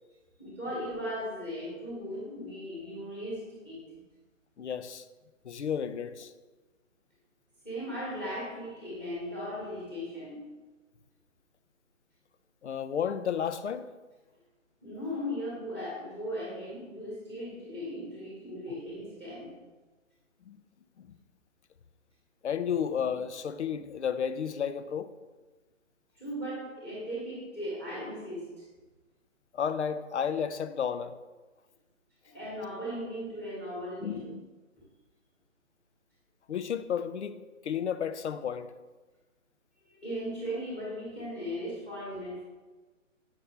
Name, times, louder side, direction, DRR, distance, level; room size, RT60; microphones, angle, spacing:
voice 1, 0.4-3.8 7.6-10.4 14.8-19.5 26.1-28.6 32.2-34.2 39.8-42.4, equal, 5° left, 1.3 m, -37 dB
voice 2, 4.6-5.1 5.4-6.3 12.6-13.9 20.5-20.6 21.0-21.1 22.4-25.1 29.5-31.2 34.0-34.5 36.5-38.7, left 7 dB, 60° left, 0.6 m, -32 dB
8.4 x 5.9 x 3.3 m
hypercardioid pair, 170°, 39 cm